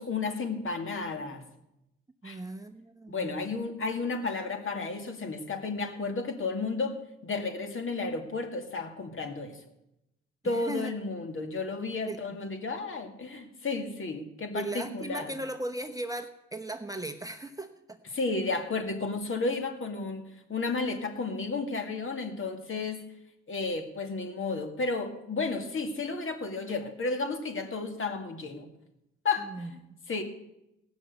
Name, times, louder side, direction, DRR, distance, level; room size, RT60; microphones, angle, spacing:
voice 1, 0.0-1.4 2.2-2.4 3.1-7.0 7.2-9.6 10.4-15.3 18.1-23.0 23.5-28.7 29.2-29.8 30.1-30.2, left 3 dB, 45° left, 6 dB, 2.2 m, -32 dB
voice 2, 2.2-3.5 10.4-10.9 12.1-12.2 14.5-18.0 29.4-30.0, right 2 dB, 10° right, 6 dB, 0.9 m, -37 dB
18.0 x 6.3 x 8.1 m, 0.87 s
cardioid pair, 90°, 30 cm